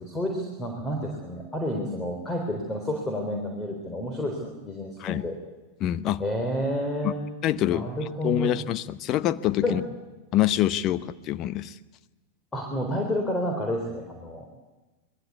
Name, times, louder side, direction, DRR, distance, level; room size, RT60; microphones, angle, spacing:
voice 1, 0.0-5.3 6.2-7.3 7.7-8.6 9.6-9.8 12.5-14.5, equal, 15° left, 2 dB, 3.8 m, -30 dB
voice 2, 5.8-6.2 7.0-7.1 7.4-7.9 8.2-9.8 10.3-11.8, left 13 dB, 35° left, 13 dB, 0.9 m, -25 dB
26.5 x 21.0 x 8.3 m, 1.2 s
figure-of-eight pair, 90°, 0 cm